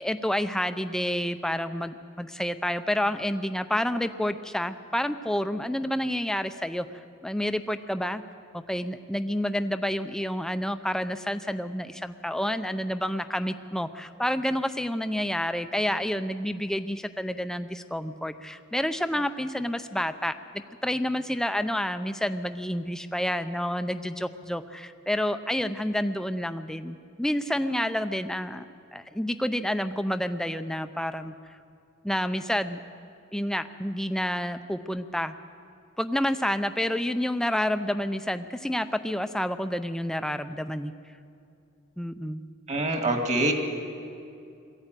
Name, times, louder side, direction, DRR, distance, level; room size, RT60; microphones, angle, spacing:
voice 1, 0.0-6.9 7.2-8.2 8.5-31.3 32.0-32.8 33.3-35.3 36.0-40.9 42.0-42.4, equal, 5° left, 9 dB, 0.6 m, -29 dB
voice 2, 42.7-43.5, right 2 dB, 35° right, 3 dB, 2.1 m, -25 dB
21.0 x 14.5 x 9.0 m, 2.5 s
head